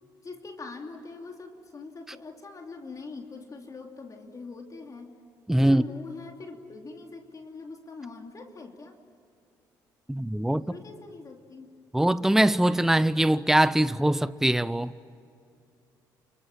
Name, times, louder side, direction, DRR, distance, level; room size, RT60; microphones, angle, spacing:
voice 1, 0.2-5.1 5.6-9.0 10.5-11.7, left 3 dB, 35° left, 3.0 m, -42 dB
voice 2, 5.5-5.8 10.1-10.6 11.9-14.9, right 1 dB, 5° right, 0.7 m, -22 dB
29.0 x 23.5 x 7.5 m
hypercardioid pair, 55°, 10 cm